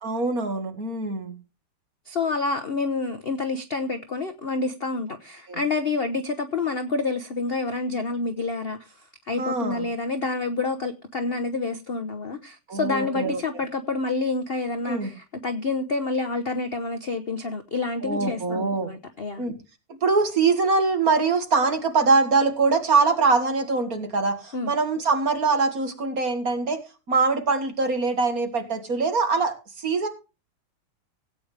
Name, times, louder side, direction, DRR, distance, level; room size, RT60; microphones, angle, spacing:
voice 1, 0.0-1.4 5.5-5.6 9.4-9.8 12.7-13.6 14.8-15.1 18.0-18.9 19.4-19.5 20.0-26.8 27.1-30.1, right 4 dB, 45° right, 2.4 m, -23 dB
voice 2, 2.1-19.4 24.5-24.7, left 3 dB, 50° left, 0.6 m, -28 dB
17.0 x 8.8 x 3.3 m
omnidirectional pair, 2.3 m